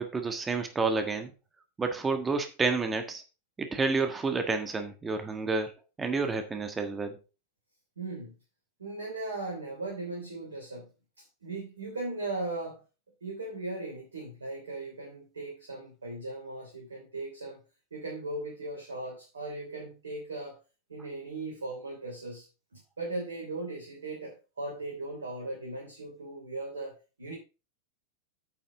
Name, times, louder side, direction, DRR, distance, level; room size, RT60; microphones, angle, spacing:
voice 1, 0.0-1.3 1.8-3.2 3.6-5.7 6.0-7.2, right 4 dB, 15° right, 7 dB, 1.5 m, -29 dB
voice 2, 8.0-8.3 8.8-12.8 13.2-17.6 17.9-20.6 20.9-22.5 22.7-27.3, right 2 dB, 70° right, -1 dB, 3.2 m, -38 dB
9.3 x 7.6 x 3.8 m, 0.30 s
figure-of-eight pair, 90°, 0 cm